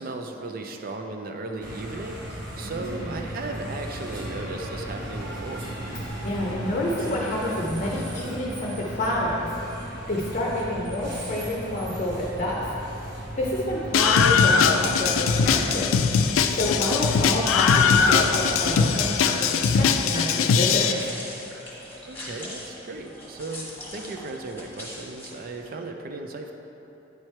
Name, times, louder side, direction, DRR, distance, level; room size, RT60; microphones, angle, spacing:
voice 1, 0.0-5.6 22.1-26.5, right 2 dB, 45° right, 4 dB, 0.5 m, -36 dB
sound 1, 1.6-19.2, right 1 dB, 65° right, 0.9 m, -36 dB
voice 2, 2.6-3.2 6.2-9.5 9.9-12.7 13.4-15.9 16.5-20.9, left 1 dB, 40° left, -4 dB, 0.7 m, -28 dB
Screaming, 13.9-20.9, left 6 dB, 90° left, 0.4 m, -21 dB
sound 2, 19.5-25.7, left 1 dB, 10° left, 1.4 m, -41 dB
9.5 x 3.2 x 4.4 m, 3.0 s
head